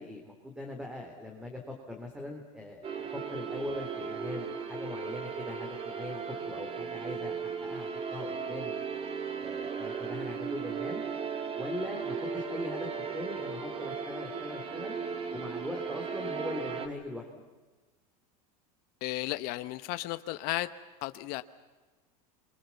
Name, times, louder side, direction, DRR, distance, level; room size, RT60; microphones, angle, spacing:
voice 1, 0.0-8.7 9.4-11.0 11.6-15.0 15.3-17.3, left 1 dB, 5° right, 2 dB, 3.3 m, -41 dB
sound 1, 2.8-16.9, right 6 dB, 30° right, 2.5 m, -36 dB
voice 2, 19.0-20.7 21.0-21.4, left 18 dB, 50° left, 11 dB, 1.0 m, -34 dB
29.0 x 24.0 x 7.2 m, 1.3 s
supercardioid pair, 135°, 20 cm